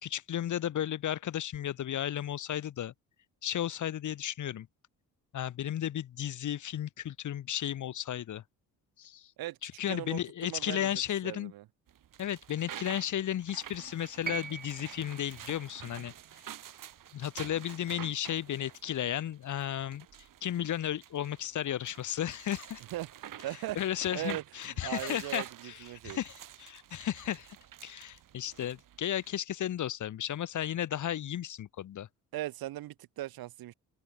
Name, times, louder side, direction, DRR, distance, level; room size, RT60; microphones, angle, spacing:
voice 1, 0.0-2.9 3.4-4.7 5.3-8.4 9.0-9.3 9.6-11.5 12.2-16.1 17.1-20.1 20.4-22.8 23.8-27.5 27.8-32.1, left 11 dB, 60° left, 1.2 m, -34 dB
voice 2, 9.9-10.2 10.5-10.9 11.2-11.6 22.9-23.8 24.1-24.4 24.8-26.2 32.3-33.7, right 15 dB, 90° right, 1.7 m, -38 dB
sound 1, 11.9-29.3, right 11 dB, 65° right, 2.5 m, -49 dB
sound 2, 14.2-18.4 19.6-19.7, right 6 dB, 25° right, 0.8 m, -44 dB
cardioid pair, 105°, 35 cm